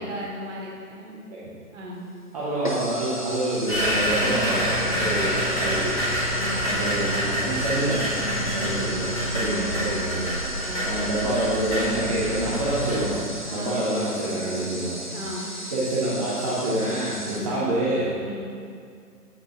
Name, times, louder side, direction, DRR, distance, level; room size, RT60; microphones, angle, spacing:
voice 1, 0.0-1.2 1.7-2.1 4.8-5.2 6.3-6.7 8.1-8.5 10.6-10.9 13.5-13.8 15.1-15.5 17.2-17.6 18.2-18.4, equal, 50° right, -4 dB, 2.0 m, -37 dB
sound 1, 2.0-2.1 2.6-17.4, equal, 35° left, 0.4 m, -36 dB
voice 2, 2.3-6.0 6.7-8.0 8.5-10.3 10.8-15.1 15.7-18.1, right 1 dB, 25° right, -9 dB, 0.8 m, -27 dB
sound 2, 3.7-13.0, equal, 10° left, 1.1 m, -27 dB
7.9 x 6.3 x 3.6 m, 2.3 s
figure-of-eight pair, 155°, 46 cm